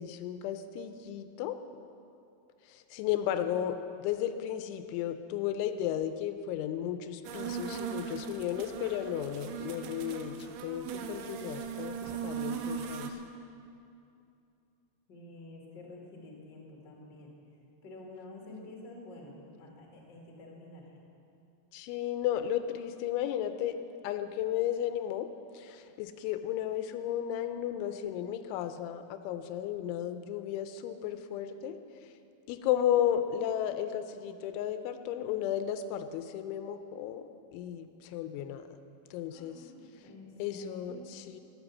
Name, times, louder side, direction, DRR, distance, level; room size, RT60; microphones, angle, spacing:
voice 1, 0.0-1.6 2.7-13.2 21.7-23.8 24.0-25.3 25.5-32.1 32.5-38.7 39.1-39.7 40.4-41.4, left 10 dB, 85° left, 9 dB, 3.0 m, -34 dB
sound 1, 7.2-13.1, right 7 dB, 90° right, 3.2 m, -38 dB
voice 2, 15.1-17.3 17.8-20.8 39.3-41.2, left 2 dB, 35° left, -2 dB, 2.0 m, -49 dB
13.5 x 11.0 x 7.2 m, 2.6 s
omnidirectional pair, 5.4 m